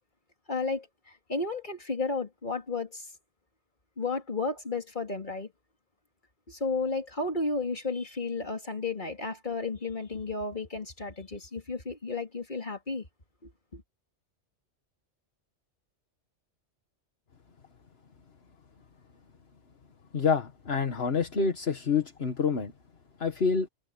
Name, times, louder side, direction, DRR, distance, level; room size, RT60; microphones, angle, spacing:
voice 1, 0.5-3.1 4.0-5.5 6.5-13.1 13.4-13.8, left 3 dB, 45° left, 3.3 m, -33 dB
voice 2, 20.1-22.7 23.2-23.7, left 5 dB, 60° left, 1.8 m, -27 dB
omnidirectional pair, 1.2 m